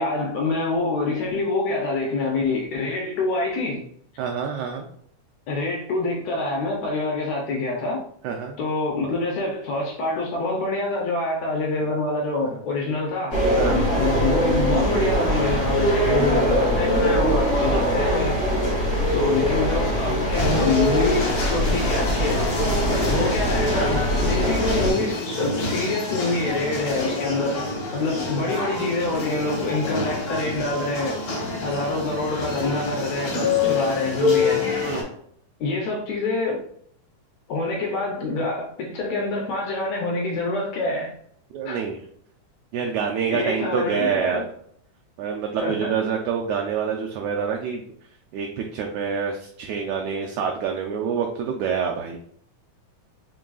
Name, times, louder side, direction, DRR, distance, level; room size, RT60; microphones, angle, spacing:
voice 1, 0.0-3.9 5.5-8.0 8.6-13.4 14.0-18.4 19.1-22.4 22.9-31.2 31.6-34.6 35.6-36.6 37.5-41.1 41.6-41.8 43.3-44.4 45.6-45.9, left 3 dB, 75° left, 1.7 m, -26 dB
voice 2, 4.2-4.9 8.2-8.6 13.6-13.9 17.7-17.9 18.6-18.8 34.8-35.1 41.5-42.1 42.7-44.4 45.2-47.8 48.3-52.2, right 6 dB, 80° right, 1.7 m, -27 dB
sound 1, 13.3-24.9, equal, 40° left, 0.7 m, -22 dB
sound 2, 20.3-35.0, left 3 dB, 60° left, 0.9 m, -27 dB
4.5 x 3.7 x 2.3 m
omnidirectional pair, 3.6 m